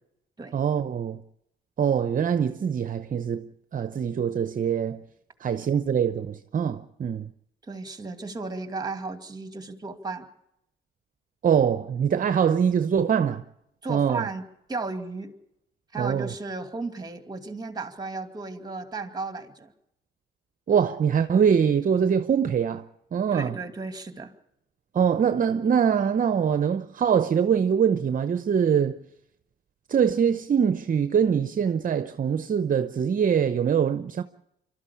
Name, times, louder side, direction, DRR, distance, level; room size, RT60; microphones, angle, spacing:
voice 1, 0.5-1.2 1.8-5.0 5.4-7.3 11.4-13.4 13.9-14.3 16.0-16.3 20.7-22.9 23.1-23.6 24.9-29.0 29.9-34.2, right 7 dB, 45° right, 0.8 m, -23 dB
voice 2, 7.7-10.3 13.8-14.4 14.7-15.3 15.9-19.7 23.3-24.3, right 3 dB, 20° right, 2.5 m, -34 dB
25.0 x 13.0 x 8.6 m
cardioid pair, 90°, 20 cm